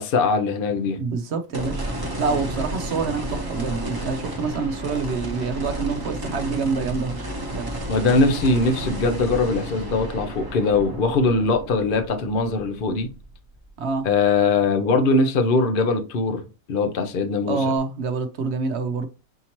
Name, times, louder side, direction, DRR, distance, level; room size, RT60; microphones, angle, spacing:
voice 1, 0.0-1.0 7.9-13.1 14.0-16.4 16.7-17.7, left 3 dB, 50° left, 0.7 m, -21 dB
voice 2, 1.0-1.8 2.2-7.2 7.5-7.7 13.8-14.1 17.5-19.1, right 4 dB, 60° right, 0.8 m, -26 dB
sound 1, 1.5-13.9 14.3-14.4 17.8-17.9, right 1 dB, 20° right, 0.9 m, -32 dB
5.8 x 2.8 x 2.9 m
omnidirectional pair, 1.4 m